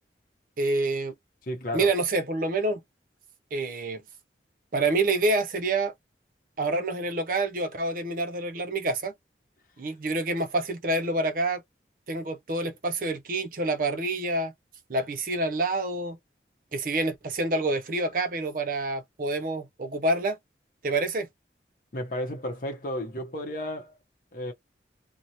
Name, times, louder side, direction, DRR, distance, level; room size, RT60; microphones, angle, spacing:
voice 1, 0.6-1.1 1.7-2.8 3.5-4.0 4.7-5.9 6.6-9.1 9.8-11.6 12.1-14.5 14.9-16.2 16.7-20.4 20.8-21.3, right 2 dB, 50° right, 0.5 m, -27 dB
voice 2, 1.4-1.9 21.9-24.0 24.3-24.5, equal, 50° left, 0.7 m, -33 dB
2.7 x 2.1 x 2.8 m
head